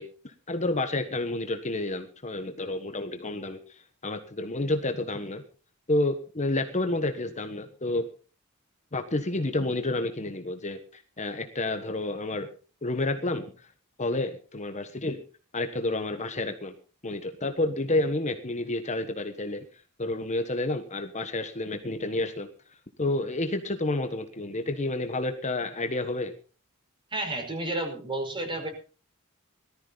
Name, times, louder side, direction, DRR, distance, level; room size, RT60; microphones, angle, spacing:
voice 1, 0.0-5.4 5.9-8.0 8.9-12.5 12.8-13.7 14.0-15.2 15.5-16.7 17.0-19.6 20.0-22.5 23.0-26.3, left 2 dB, 30° left, 7 dB, 1.4 m, -30 dB
voice 2, 27.1-28.7, right 2 dB, 20° right, 4 dB, 5.1 m, -31 dB
18.5 x 14.0 x 4.1 m, 0.37 s
head